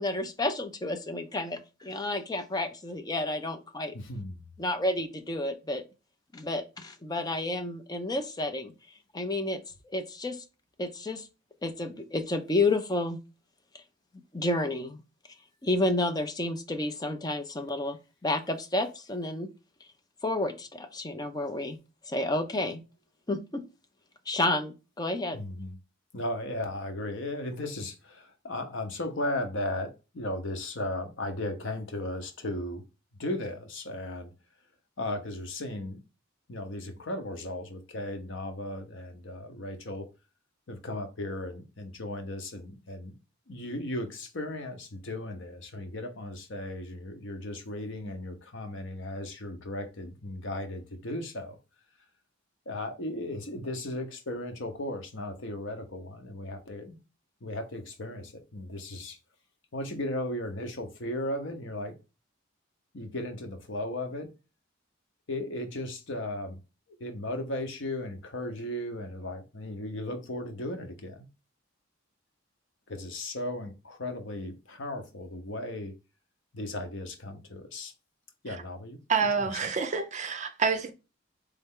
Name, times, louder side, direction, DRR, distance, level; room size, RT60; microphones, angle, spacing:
voice 1, 0.0-3.9 4.6-5.8 6.3-8.7 9.1-9.6 9.9-10.4 10.8-11.3 11.6-13.2 14.3-15.0 15.6-19.5 20.2-21.8 22.0-22.8 23.3-23.6 24.3-25.4, left 2 dB, 20° left, 0.5 m, -30 dB
voice 2, 3.9-4.6 25.3-25.8 26.1-32.8 33.2-34.3 35.0-36.0 36.5-40.1 40.7-43.1 43.5-51.6 52.7-57.0 57.4-59.2 59.7-61.9 62.9-64.3 65.3-66.6 67.0-71.2 72.9-75.9 76.5-77.9 78.4-79.0 79.4-79.5, left 1 dB, 65° left, 0.9 m, -36 dB
voice 3, 79.1-80.9, right 5 dB, 40° right, 0.6 m, -28 dB
4.2 x 3.4 x 3.7 m
head